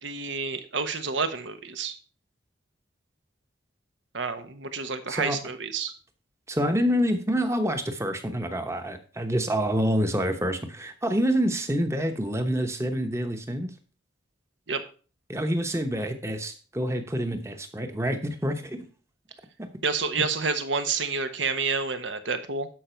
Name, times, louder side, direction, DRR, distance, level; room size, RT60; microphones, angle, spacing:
voice 1, 0.0-1.9 4.1-5.9 14.7-14.8 19.8-22.7, right 4 dB, 80° right, 9 dB, 1.2 m, -29 dB
voice 2, 6.5-13.7 15.3-18.9 19.6-19.7, equal, 15° right, 7 dB, 0.9 m, -27 dB
12.0 x 5.4 x 4.4 m, 0.38 s
head